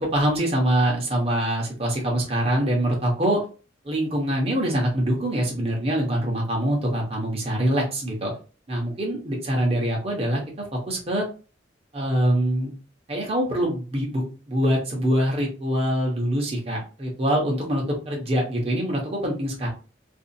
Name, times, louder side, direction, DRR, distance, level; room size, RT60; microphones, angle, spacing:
voice 1, 0.1-3.4 3.8-8.3 8.7-10.4 10.7-11.3 11.9-12.7 13.1-19.7, right 1 dB, 30° right, -1 dB, 0.9 m, -24 dB
2.6 x 2.4 x 2.6 m, 0.35 s
head